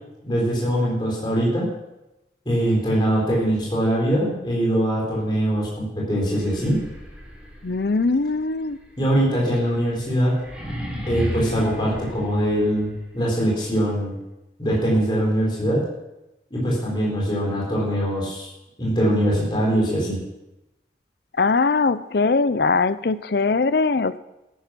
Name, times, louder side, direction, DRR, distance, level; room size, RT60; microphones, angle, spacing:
voice 1, 0.2-1.7 2.5-6.8 9.0-10.4 11.1-14.2 14.6-15.8 16.5-18.5 18.8-20.2, equal, 25° left, -4 dB, 4.3 m, -22 dB
sound 1, 6.3-13.1, left 1 dB, 5° right, 4.0 m, -35 dB
voice 2, 7.6-8.8 21.4-24.2, left 4 dB, 60° left, 15 dB, 0.6 m, -21 dB
13.0 x 11.0 x 6.0 m, 0.95 s
head